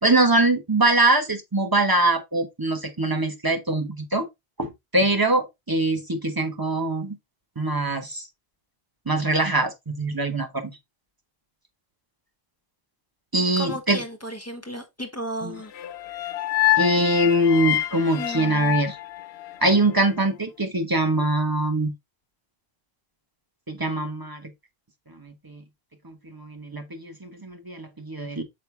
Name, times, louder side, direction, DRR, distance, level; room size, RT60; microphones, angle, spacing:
voice 1, 0.0-4.3 4.6-7.2 7.6-8.2 9.1-10.8 13.3-14.0 15.4-15.6 16.8-19.0 19.6-21.9 23.7-24.5 25.1-25.6 26.0-28.4, right 2 dB, 20° right, 1.3 m, -23 dB
voice 2, 13.6-15.7 18.2-18.8, equal, 15° left, 1.3 m, -34 dB
sound 1, 15.7-20.0, left 14 dB, 85° left, 0.8 m, -26 dB
6.7 x 5.0 x 3.4 m
omnidirectional pair, 1.1 m